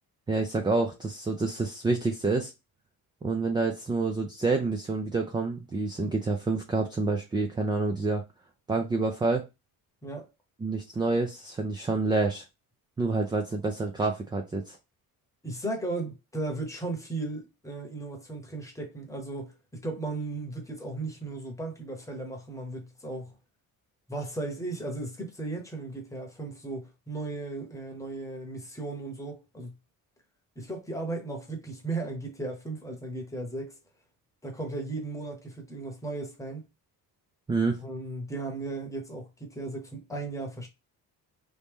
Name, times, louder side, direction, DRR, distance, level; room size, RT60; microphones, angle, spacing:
voice 1, 0.3-2.5 3.2-8.2 8.7-9.4 10.6-12.4 13.0-14.8 37.5-37.8, right 3 dB, 15° right, 0.3 m, -28 dB
voice 2, 15.4-23.3 24.1-29.7 30.6-33.8 34.4-36.6 37.8-40.7, right 2 dB, 10° left, 1.0 m, -36 dB
3.1 x 2.7 x 3.5 m
cardioid pair, 150°, 37 cm